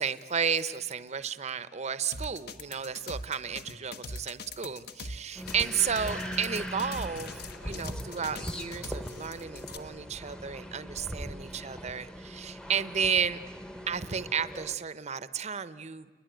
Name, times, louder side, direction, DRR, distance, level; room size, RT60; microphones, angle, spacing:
voice 1, 0.0-7.4 7.6-13.4 13.9-16.1, right 7 dB, 40° right, 13 dB, 0.7 m, -32 dB
sound 1, 2.1-9.8, left 2 dB, 60° left, 1.3 m, -41 dB
sound 2, 5.3-14.8, equal, 5° left, 0.9 m, -40 dB
29.0 x 22.0 x 9.0 m, 1.4 s
head